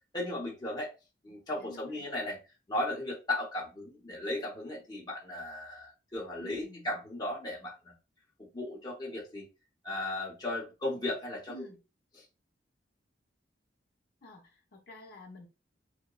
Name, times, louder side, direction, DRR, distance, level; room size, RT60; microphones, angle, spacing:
voice 1, 0.1-0.9 1.2-2.4 2.7-7.9 8.4-9.4 9.8-11.5, left 1 dB, 20° left, 0.8 m, -36 dB
voice 2, 1.6-2.1 6.4-6.9 11.5-11.8 14.2-15.5, left 1 dB, 55° left, 0.6 m, -50 dB
2.8 x 2.1 x 2.2 m
head